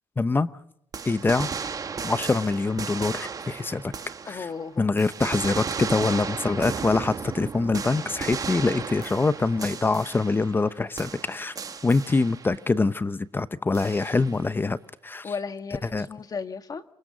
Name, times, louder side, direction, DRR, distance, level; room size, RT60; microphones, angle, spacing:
voice 1, 0.2-0.5 1.0-1.5 2.0-3.9 4.3-4.5 4.8-11.6 11.8-15.3 15.8-16.1, left 3 dB, 20° left, 0.8 m, -24 dB
sound 1, 0.9-4.6 5.0-10.7 11.0-12.6 13.7-14.5, right 5 dB, 35° right, 1.3 m, -35 dB
voice 2, 4.3-4.9 15.2-16.8, left 5 dB, 40° left, 1.6 m, -34 dB
28.5 x 25.5 x 4.0 m
cardioid pair, 125°, 10 cm